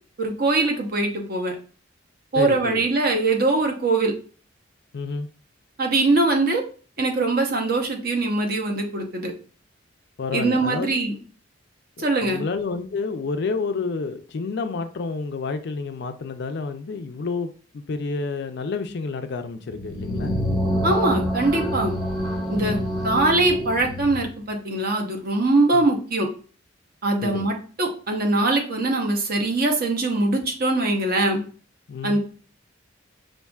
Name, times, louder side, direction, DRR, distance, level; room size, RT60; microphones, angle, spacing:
voice 1, 0.2-1.5 2.3-4.1 5.8-6.6 7.0-9.3 10.3-11.2 12.0-12.4 20.8-21.9 22.5-22.8 23.0-26.3 27.0-31.4 32.0-32.2, right 2 dB, 50° right, 0.8 m, -22 dB
voice 2, 2.3-2.8 4.9-5.3 10.2-10.9 12.0-20.5 22.2-22.3 22.5-22.9 25.7-25.9 27.2-27.5 31.9-32.2, left 4 dB, 60° left, 0.4 m, -29 dB
sound 1, 19.6-24.3, equal, ahead, 0.8 m, -27 dB
5.4 x 2.6 x 2.3 m
head